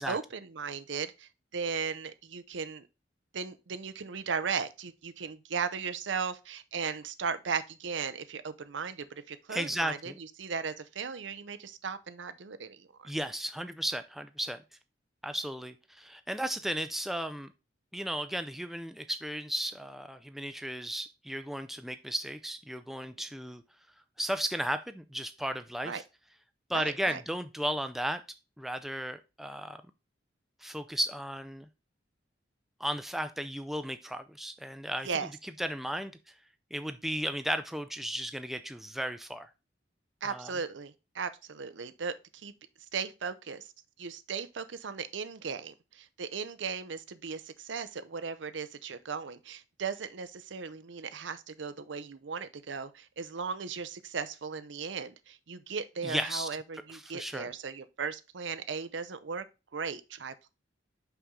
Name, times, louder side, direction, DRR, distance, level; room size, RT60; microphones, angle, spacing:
voice 1, 0.0-2.9 3.3-13.1 25.8-26.0 26.7-27.2 35.0-35.3 40.2-42.5 42.9-43.7 44.0-59.4 59.7-60.5, right 5 dB, 80° right, 0.6 m, -37 dB
voice 2, 9.5-10.2 13.0-14.6 15.2-17.5 17.9-23.6 24.2-26.0 26.7-28.2 28.6-29.8 30.6-31.7 32.8-35.1 35.6-36.1 36.7-39.5 40.2-40.5 56.0-56.5 56.9-57.5, equal, ahead, 0.4 m, -35 dB
5.8 x 5.6 x 3.7 m
head